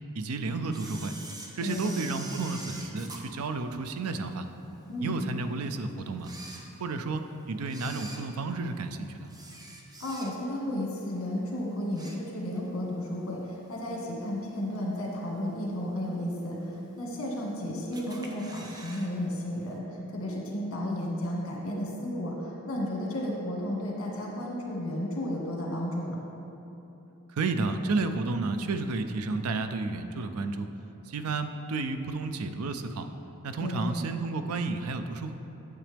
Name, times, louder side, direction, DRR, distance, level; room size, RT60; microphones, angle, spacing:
voice 1, 0.1-1.1 1.5-4.5 5.0-6.3 6.8-9.3 27.3-30.7 31.1-33.1 33.4-35.3, right 3 dB, 80° right, 8 dB, 0.5 m, -31 dB
Camera, 0.7-4.3 4.8-4.9 5.6-5.7 6.1-7.2 7.6-10.6 11.0-11.3 11.6-12.7 13.0-13.1 14.1-14.2 14.8-15.2 15.6-15.7 15.9-16.0 16.1-16.2 17.0-17.5 17.9-19.1 19.3-19.4 19.7-19.8, right 2 dB, 20° right, 0.7 m, -45 dB
voice 2, 1.6-1.9 4.9-5.2 10.0-26.2 33.6-33.9, left 1 dB, 65° left, -2 dB, 1.6 m, -33 dB
8.9 x 7.4 x 3.4 m, 3.0 s
head